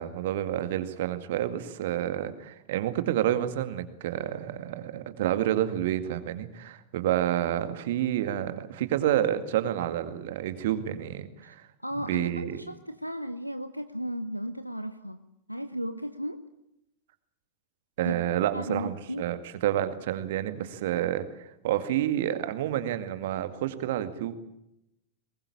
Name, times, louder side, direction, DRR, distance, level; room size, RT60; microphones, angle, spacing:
voice 1, 0.0-11.7 12.0-12.6 18.0-19.4 19.6-24.3, right 12 dB, 55° right, 11 dB, 2.0 m, -29 dB
voice 2, 11.8-15.2 15.5-16.4 18.0-18.1 18.5-19.3, equal, 90° right, 11 dB, 0.9 m, -35 dB
22.5 x 21.0 x 8.6 m, 0.84 s
figure-of-eight pair, 90°, 0 cm